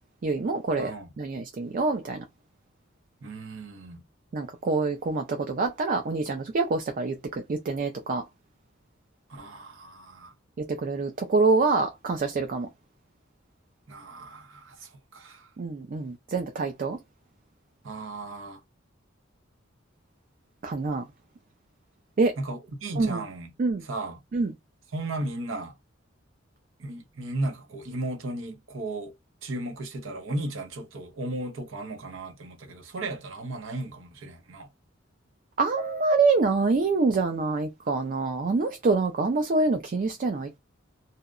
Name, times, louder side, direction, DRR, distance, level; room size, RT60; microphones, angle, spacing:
voice 1, 0.2-2.2 4.3-8.2 10.8-12.7 15.6-17.0 20.6-21.0 22.2-22.3 23.0-23.2 23.6-23.8 24.3-24.5 35.6-40.6, right 3 dB, 45° right, 0.4 m, -26 dB
voice 2, 0.8-1.1 3.2-4.0 9.3-10.3 13.9-15.5 17.8-18.6 22.4-23.5 23.8-24.2 24.9-25.7 26.8-29.1 29.4-34.7, right 2 dB, 90° right, 0.7 m, -35 dB
2.7 x 2.1 x 2.4 m
head